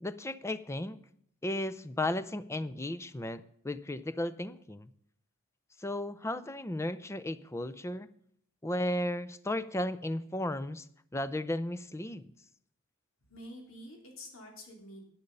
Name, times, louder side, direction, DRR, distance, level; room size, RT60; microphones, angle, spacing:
voice 1, 0.0-1.0 1.4-4.9 5.8-8.1 8.6-10.9 11.1-12.3, left 1 dB, 15° left, 14 dB, 0.5 m, -34 dB
voice 2, 13.2-15.0, left 1 dB, 70° left, 1 dB, 3.4 m, -48 dB
10.5 x 9.5 x 5.4 m, 0.67 s
head